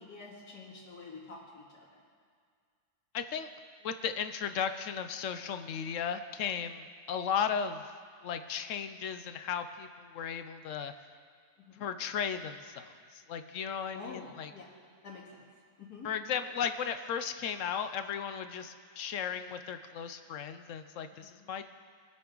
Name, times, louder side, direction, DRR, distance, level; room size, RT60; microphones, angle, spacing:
voice 1, 0.0-1.8 11.6-11.8 13.9-14.7 15.0-15.2 15.8-16.1 21.2-21.5, left 4 dB, 85° left, -4 dB, 2.8 m, -47 dB
voice 2, 3.1-3.5 3.8-7.8 8.2-10.9 11.8-12.9 13.3-14.5 16.0-21.6, left 7 dB, 65° left, 10 dB, 0.8 m, -35 dB
22.0 x 7.8 x 3.8 m, 2.1 s
omnidirectional pair, 1.7 m